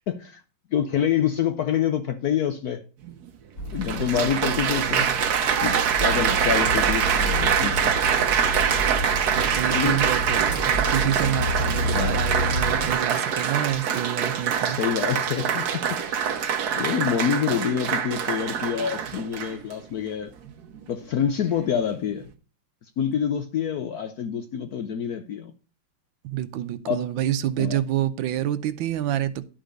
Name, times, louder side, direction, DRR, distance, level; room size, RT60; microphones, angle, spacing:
voice 1, 0.1-0.4 0.7-2.8 3.7-5.7 6.0-7.9 9.7-10.0 11.8-12.2 14.6-16.3 16.7-20.3 20.9-22.3 23.0-25.5 26.9-27.0 27.6-27.8, left 8 dB, 70° left, 0.9 m, -27 dB
Applause, 3.0-3.1 3.8-19.7 20.5-20.8, right 7 dB, 60° right, 1.2 m, -24 dB
sound 1, 3.6-13.0, equal, 45° left, 4.5 m, -30 dB
voice 2, 4.0-5.0 9.3-14.8 26.2-29.4, right 12 dB, 75° right, 1.4 m, -28 dB
11.5 x 5.0 x 5.1 m
omnidirectional pair, 2.3 m